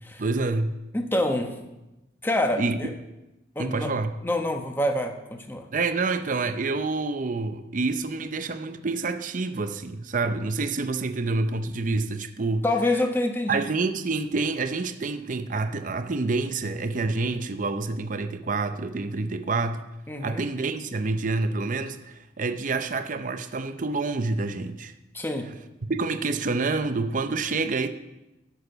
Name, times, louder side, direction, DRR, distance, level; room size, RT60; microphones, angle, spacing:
voice 1, 0.2-0.7 2.6-2.8 3.6-4.1 5.7-12.6 13.5-19.8 20.2-24.9 25.9-27.9, right 3 dB, 45° right, 0.6 m, -27 dB
voice 2, 0.9-1.5 2.2-2.9 3.5-3.9 4.2-5.7 12.6-13.6 20.1-20.4 25.1-25.5, left 1 dB, 10° left, 1.0 m, -26 dB
11.5 x 6.4 x 6.9 m
head